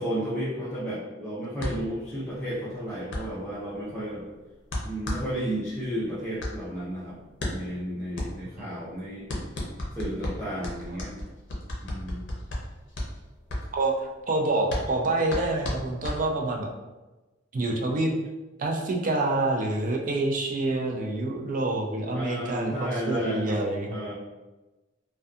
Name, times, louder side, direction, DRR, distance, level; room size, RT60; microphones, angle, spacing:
voice 1, 0.0-4.3 4.8-7.2 7.5-9.3 9.9-11.1 11.8-12.2 22.1-23.6 23.9-24.1, right 1 dB, 5° left, -12 dB, 0.5 m, -32 dB
sound 1, 1.6-16.7, left 1 dB, 65° left, 0.6 m, -35 dB
voice 2, 14.3-16.7 17.5-18.1 18.6-24.0, right 2 dB, 45° right, 0 dB, 0.4 m, -27 dB
2.6 x 2.2 x 2.3 m, 1.1 s
head